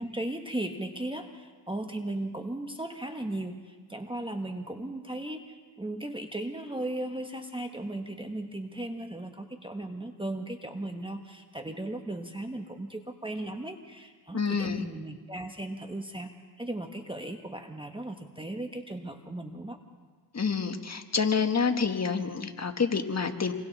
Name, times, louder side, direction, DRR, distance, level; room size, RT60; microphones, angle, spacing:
voice 1, 0.0-16.3 16.6-19.8, right 1 dB, 10° right, 5 dB, 1.4 m, -36 dB
voice 2, 14.3-14.8 20.3-23.5, left 5 dB, 35° left, 6 dB, 1.7 m, -28 dB
28.5 x 23.0 x 4.2 m, 1.5 s
cardioid pair, 75°, 43 cm